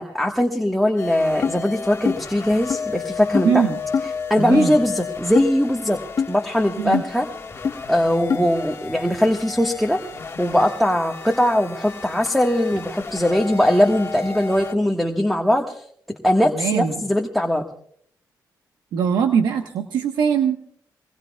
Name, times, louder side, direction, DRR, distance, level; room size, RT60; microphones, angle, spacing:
voice 1, 0.0-3.7 4.3-6.0 6.3-7.3 7.9-10.0 10.4-17.6, left 1 dB, ahead, 1 dB, 1.5 m, -20 dB
sound 1, 1.0-14.7, left 5 dB, 35° left, 1.6 m, -33 dB
Cardboard Tube Strikes, 1.4-1.6 2.1-2.2 2.7-2.8 3.3-3.5 3.9-4.1 4.5-4.7 5.4-5.5 6.2-6.3 6.9-7.1 7.6-7.7 8.3-8.4, left 6 dB, 55° left, 1.3 m, -22 dB
voice 2, 3.4-3.8 4.4-4.8 6.8-7.0 16.5-16.9 18.9-20.6, right 7 dB, 90° right, 4 dB, 1.2 m, -21 dB
23.0 x 21.0 x 2.3 m, 0.63 s
cardioid pair, 85°, 7 cm